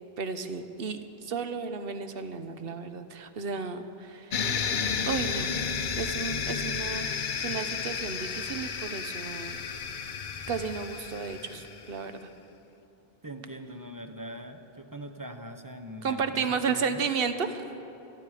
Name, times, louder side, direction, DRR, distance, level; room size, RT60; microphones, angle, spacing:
voice 1, 0.2-4.7 5.1-5.5 5.9-9.6 10.5-12.3 16.0-17.7, right 5 dB, 70° right, 9 dB, 1.1 m, -33 dB
sound 1, 4.3-11.9, left 6 dB, 55° left, 0.8 m, -32 dB
voice 2, 13.2-17.0, right 1 dB, 20° right, 7 dB, 0.7 m, -42 dB
26.0 x 11.5 x 4.9 m, 2.9 s
omnidirectional pair, 1.0 m